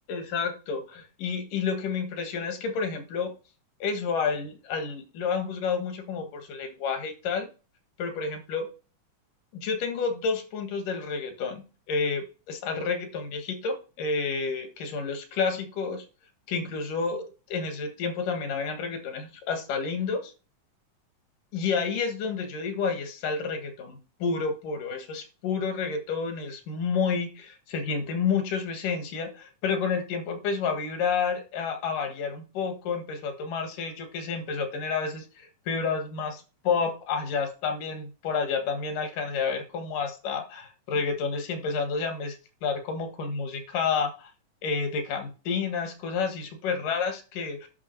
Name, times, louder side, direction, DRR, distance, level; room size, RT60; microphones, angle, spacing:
voice 1, 0.1-3.3 3.8-7.5 8.0-8.7 9.5-16.1 16.5-20.3 21.5-42.4 42.6-44.3 44.6-47.6, left 5 dB, 85° left, 6 dB, 3.1 m, -30 dB
9.7 x 5.8 x 4.5 m, 0.33 s
omnidirectional pair, 3.6 m